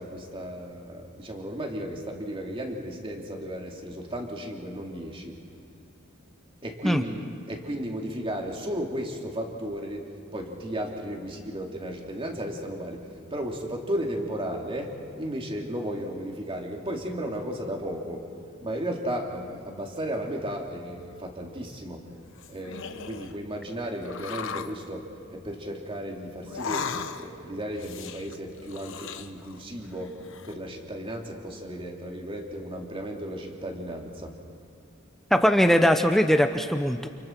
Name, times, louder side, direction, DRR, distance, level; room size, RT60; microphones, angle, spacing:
voice 1, 0.0-5.4 6.6-18.3 18.6-22.0 22.5-34.4, equal, 25° right, 1 dB, 2.6 m, -34 dB
Velociraptor Gurgles, 22.2-23.4 24.0-24.8 26.4-27.4 27.7-29.7 30.0-30.5, left 6 dB, 65° left, 1.1 m, -37 dB
voice 2, 35.3-37.1, equal, ahead, 6 dB, 0.7 m, -20 dB
30.0 x 29.0 x 4.5 m, 2.5 s
head